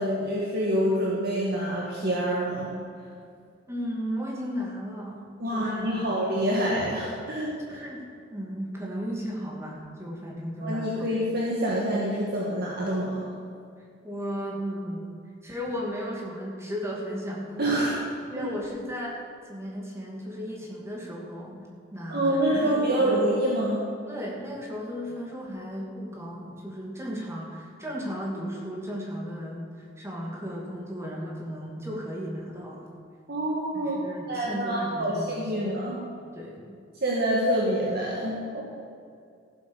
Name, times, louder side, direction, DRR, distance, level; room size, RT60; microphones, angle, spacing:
voice 1, 0.0-2.7 5.4-7.8 10.6-13.3 17.6-18.0 18.3-18.5 22.1-23.8 33.3-34.0 34.3-36.0 37.0-38.6, right 1 dB, 55° right, -4 dB, 1.9 m, -26 dB
voice 2, 3.7-5.2 5.5-6.2 7.7-8.0 8.3-11.1 14.0-15.1 15.4-17.9 18.3-21.6 21.9-23.3 24.1-32.9 33.7-35.7 36.3-36.7, equal, 15° right, -3 dB, 2.6 m, -35 dB
15.0 x 7.8 x 6.5 m, 2.3 s
head